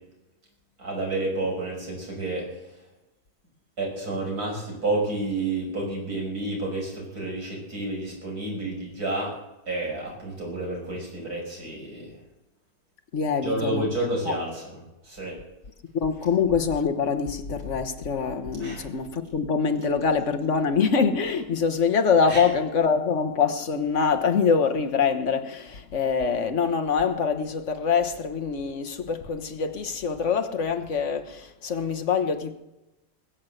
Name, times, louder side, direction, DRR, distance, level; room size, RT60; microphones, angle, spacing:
voice 1, 0.8-2.5 3.8-9.3 9.7-12.1 13.4-14.6 15.0-15.3 18.6-18.9 22.2-22.4, right 2 dB, 70° right, 6.7 m, -30 dB
voice 2, 13.1-13.9 14.2-14.3 15.9-32.5, left 5 dB, 50° left, 1.5 m, -24 dB
21.5 x 7.6 x 8.0 m
omnidirectional pair, 1.7 m